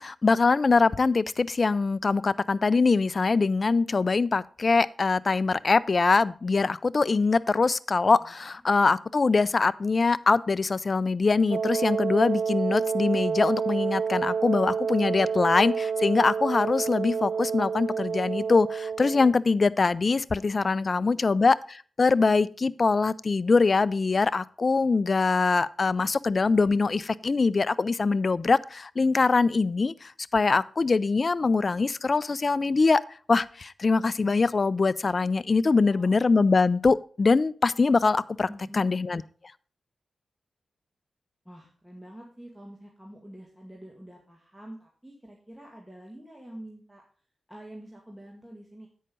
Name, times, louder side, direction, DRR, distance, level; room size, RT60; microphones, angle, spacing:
voice 1, 0.0-33.0 33.3-38.5 38.8-39.2, left 4 dB, 50° left, 19 dB, 0.4 m, -23 dB
voice 2, 8.1-8.6 20.6-21.3 35.6-36.2 38.5-38.9 41.5-47.0 47.5-48.9, right 1 dB, 5° right, 0 dB, 2.0 m, -46 dB
Wind instrument woodwind instrument, 11.5-19.4, right 6 dB, 65° right, 0.5 m, -29 dB
8.7 x 5.6 x 5.3 m, 0.43 s
cardioid pair, 45°, 0 cm